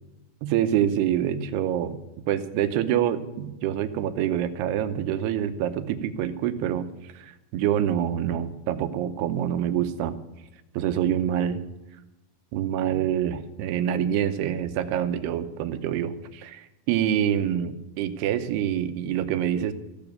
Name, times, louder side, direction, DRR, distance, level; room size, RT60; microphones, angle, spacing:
voice 1, 0.4-2.0 2.3-10.1 10.7-11.6 12.5-19.7, right 10 dB, 80° right, 11 dB, 2.9 m, -26 dB
15.0 x 7.1 x 9.3 m, 1.0 s
omnidirectional pair, 4.7 m